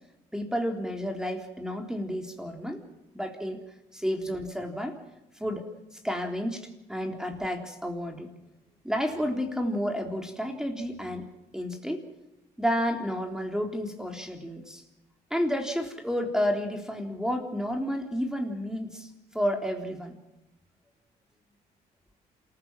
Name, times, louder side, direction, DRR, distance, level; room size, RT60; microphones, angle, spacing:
voice 1, 0.3-2.8 3.1-3.6 3.9-5.0 5.4-8.3 8.8-11.3 11.5-12.0 12.6-14.8 15.3-20.2, equal, 5° right, 4 dB, 3.6 m, -31 dB
27.0 x 15.5 x 7.5 m, 0.96 s
supercardioid pair, 55°, 19 cm